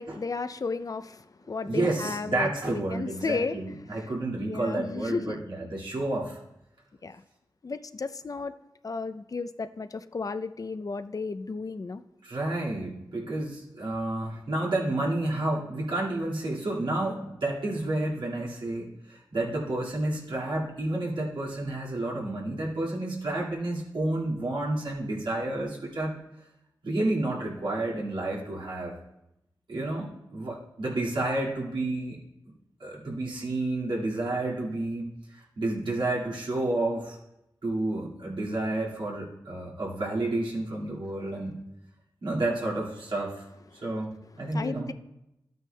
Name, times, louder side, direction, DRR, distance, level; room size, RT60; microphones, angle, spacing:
voice 1, 0.0-3.6 3.9-4.1 4.5-5.4 7.0-7.2 7.6-8.5 8.8-12.0 44.5-44.9, left 4 dB, 50° left, 11 dB, 0.4 m, -34 dB
voice 2, 1.7-6.4 12.2-26.1 26.8-28.9 29.7-32.2 32.8-35.0 35.3-37.2 37.6-41.6 42.2-43.4 43.7-44.9, right 2 dB, 80° right, -5 dB, 2.0 m, -30 dB
12.5 x 9.2 x 2.2 m, 0.88 s
cardioid pair, 45°, 8 cm